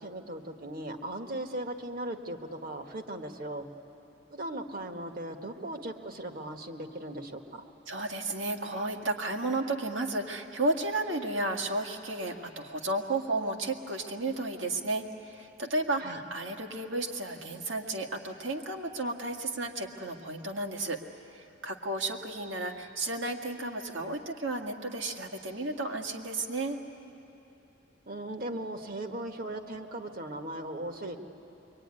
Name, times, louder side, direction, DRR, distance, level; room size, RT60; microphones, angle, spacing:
voice 1, 0.0-3.7 4.3-7.6 16.0-16.2 28.1-31.2, right 1 dB, 50° right, 5 dB, 1.5 m, -38 dB
voice 2, 7.9-21.0 21.4-26.8, right 2 dB, 75° right, 3 dB, 1.9 m, -33 dB
24.0 x 23.5 x 9.8 m, 2.9 s
head